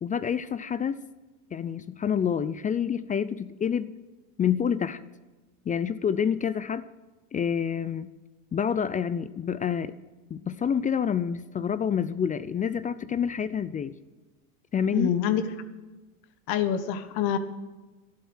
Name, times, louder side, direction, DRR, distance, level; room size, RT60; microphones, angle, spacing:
voice 1, 0.0-1.0 1.5-3.9 4.4-5.0 5.7-6.9 7.3-8.1 8.5-9.9 10.3-14.0 14.7-15.1, left 7 dB, 20° left, 15 dB, 0.4 m, -28 dB
voice 2, 14.9-15.4 16.5-17.4, left 9 dB, 55° left, 10 dB, 1.5 m, -25 dB
12.0 x 11.5 x 6.3 m, 1.2 s
hypercardioid pair, 100°, 44 cm